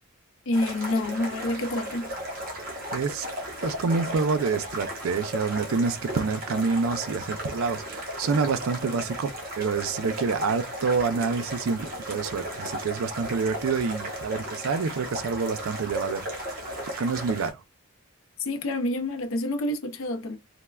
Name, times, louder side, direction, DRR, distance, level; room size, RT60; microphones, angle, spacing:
voice 1, 0.5-2.1 18.4-20.4, left 1 dB, 65° left, 0.5 m, -28 dB
sound 1, 0.5-17.5, equal, 40° right, 0.9 m, -35 dB
voice 2, 2.9-3.3 3.6-16.2 17.0-17.6, right 5 dB, 70° right, 0.4 m, -27 dB
3.2 x 2.0 x 2.3 m
head